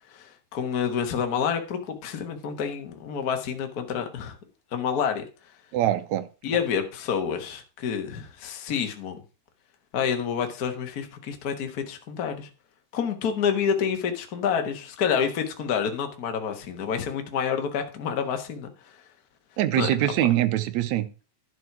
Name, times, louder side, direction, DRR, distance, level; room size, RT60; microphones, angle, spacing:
voice 1, 0.1-4.4 4.7-5.2 6.4-9.2 9.9-12.5 12.9-19.0 19.7-19.9, left 7 dB, 45° left, 1.2 m, -28 dB
voice 2, 5.7-6.2 19.6-21.1, right 13 dB, 80° right, 2.0 m, -23 dB
11.0 x 4.8 x 5.9 m
omnidirectional pair, 3.3 m